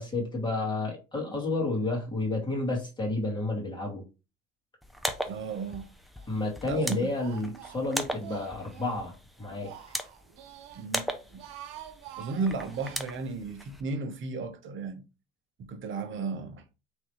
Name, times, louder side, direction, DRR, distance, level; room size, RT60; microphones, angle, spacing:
voice 1, 0.0-4.0 6.3-9.7, left 2 dB, 15° left, 2.2 m, -31 dB
sound 1, 4.8-13.8, equal, ahead, 0.6 m, -39 dB
Speech, 5.2-5.9 6.2-9.0 9.4-10.9 11.2-13.0, right 11 dB, 85° right, 0.7 m, -48 dB
voice 2, 5.3-5.9 6.7-7.1 10.7-11.4 12.2-15.0 15.6-16.6, right 4 dB, 40° right, 0.9 m, -34 dB
3.7 x 3.2 x 3.1 m
supercardioid pair, 100°, 29 cm